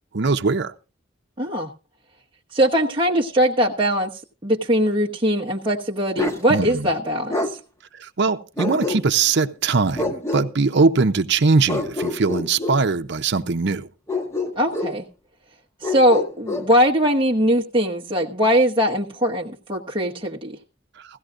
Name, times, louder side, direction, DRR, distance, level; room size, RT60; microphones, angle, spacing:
voice 1, 0.1-0.7 6.5-6.9 7.9-13.9, right 4 dB, 65° right, 0.7 m, -21 dB
voice 2, 1.4-1.7 2.5-4.1 4.4-7.6 14.6-15.0 15.8-20.6, equal, 25° right, 1.0 m, -21 dB
Bark, 6.2-6.4 7.3-7.5 8.6-9.3 9.9-10.5 11.7-12.8 14.1-15.0 15.8-16.7, left 2 dB, 15° left, 1.3 m, -26 dB
16.5 x 15.0 x 2.5 m
head